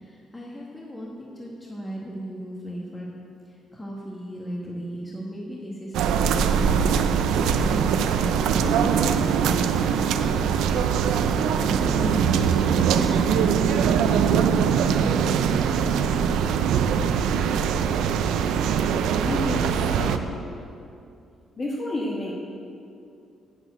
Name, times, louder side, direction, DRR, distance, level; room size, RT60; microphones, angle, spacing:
voice 1, 0.0-3.1 3.4-6.9 7.3-15.2, equal, 15° left, -3 dB, 1.5 m, -36 dB
sound 1, 5.9-20.2, right 7 dB, 85° right, 0.5 m, -22 dB
voice 2, 19.2-20.2 21.6-22.3, left 1 dB, 35° left, -3 dB, 1.6 m, -29 dB
8.2 x 7.4 x 8.1 m, 2.5 s
cardioid pair, 90°, 0 cm